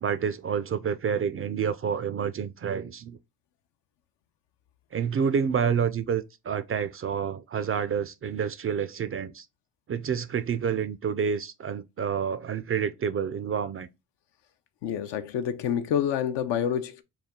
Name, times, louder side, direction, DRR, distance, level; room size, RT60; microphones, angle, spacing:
voice 1, 0.0-3.2 4.9-9.5 9.9-13.9, right 7 dB, 30° right, 0.4 m, -28 dB
voice 2, 14.8-17.0, left 9 dB, 70° left, 0.6 m, -28 dB
4.0 x 2.3 x 3.6 m
supercardioid pair, 55°, 44 cm